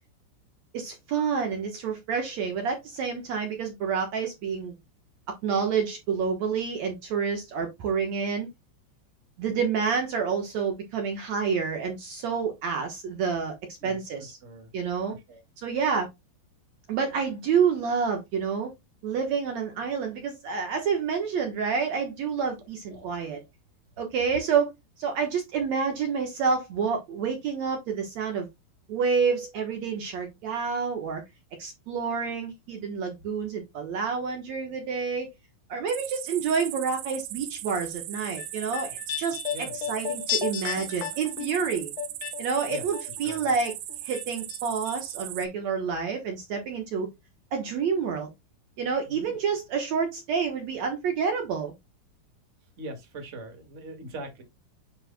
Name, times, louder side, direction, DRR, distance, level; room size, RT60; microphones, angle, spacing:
voice 1, 0.7-4.7 5.4-8.5 9.4-13.5 13.8-14.4 14.7-15.2 15.6-16.1 16.9-18.7 19.0-23.4 24.0-24.7 25.0-28.5 28.9-31.2 31.6-35.3 35.7-41.9 42.4-43.7 44.0-47.1 47.5-48.3 48.8-51.7, right 6 dB, 65° right, 1.8 m, -28 dB
voice 2, 13.8-14.7 15.1-15.4 22.9-23.1 39.5-39.7 42.7-42.9 43.2-43.5 49.0-49.4 52.8-54.4, right 1 dB, 40° right, 1.1 m, -42 dB
sound 1, 35.9-45.5, right 15 dB, 85° right, 2.8 m, -38 dB
sound 2, 38.1-43.4 43.6-44.6 44.8-44.9, left 12 dB, 70° left, 1.9 m, -34 dB
9.6 x 5.1 x 2.2 m
omnidirectional pair, 4.7 m